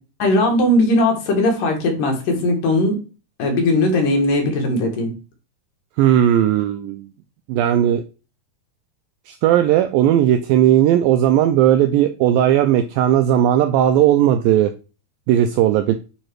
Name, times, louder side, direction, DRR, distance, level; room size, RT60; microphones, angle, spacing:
voice 1, 0.2-3.0 3.4-5.1, left 1 dB, 60° left, 2 dB, 3.1 m, -18 dB
voice 2, 6.0-7.1 7.5-8.0 9.3-14.7 15.3-16.0, right 11 dB, 85° right, 9 dB, 2.1 m, -16 dB
9.2 x 4.1 x 4.7 m, 0.33 s
omnidirectional pair, 4.6 m